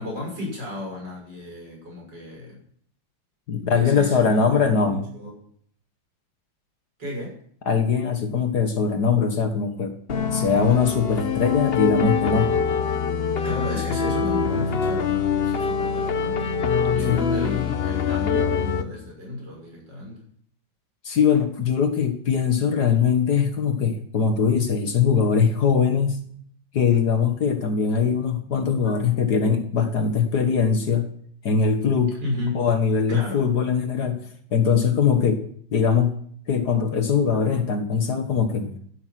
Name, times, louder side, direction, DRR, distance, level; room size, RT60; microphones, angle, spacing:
voice 1, 0.0-2.6 3.7-4.4 4.7-5.4 7.0-7.4 13.4-16.6 16.9-20.2 32.2-32.6 33.1-33.4, left 2 dB, 60° right, -1 dB, 7.0 m, -33 dB
voice 2, 3.5-5.0 7.7-10.0 10.3-12.6 17.0-17.2 21.0-26.3 26.7-31.1 31.4-32.2 32.6-34.2 34.5-35.4 35.7-36.2 36.5-38.9, left 6 dB, 55° left, 7 dB, 1.8 m, -21 dB
sound 1, 10.1-18.9, left 6 dB, 40° left, 0.9 m, -24 dB
16.0 x 12.5 x 5.9 m, 0.63 s
omnidirectional pair, 2.2 m